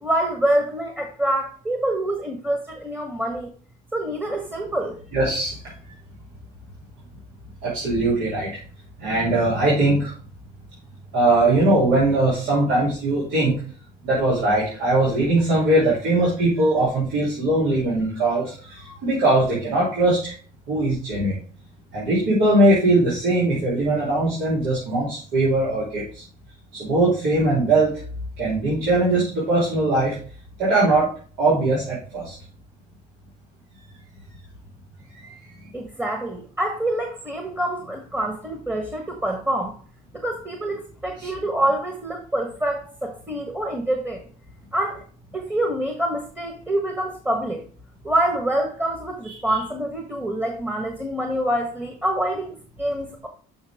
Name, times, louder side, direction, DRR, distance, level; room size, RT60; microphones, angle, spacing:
voice 1, 0.0-3.5 3.9-5.0 35.7-39.8 40.1-44.2 44.7-45.0 45.3-47.6 48.0-53.3, right 1 dB, 10° right, 3 dB, 1.4 m, -26 dB
voice 2, 5.1-5.5 7.6-8.5 9.0-10.1 11.1-13.5 14.0-20.3 20.7-21.4 21.9-26.2 26.7-27.9 28.4-30.2 30.6-31.1 31.4-32.3 41.2-41.3 49.5-49.6, right 2 dB, 75° right, -8 dB, 3.5 m, -20 dB
6.5 x 5.7 x 3.6 m, 0.42 s
supercardioid pair, 80°, 19 cm